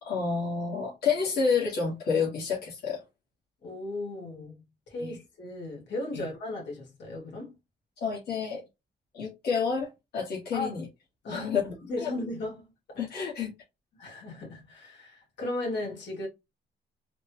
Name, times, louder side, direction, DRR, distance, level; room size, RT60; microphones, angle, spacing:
voice 1, 0.0-3.0 5.0-5.1 6.1-6.2 8.0-8.6 9.1-10.9 11.3-12.1 13.0-13.5, left 5 dB, 60° left, 1.7 m, -29 dB
voice 2, 3.6-7.6 10.5-10.7 11.2-11.5 11.8-13.0 13.9-16.3, left 2 dB, 75° left, 2.1 m, -36 dB
4.2 x 2.3 x 3.0 m
cardioid pair, 135°, 19 cm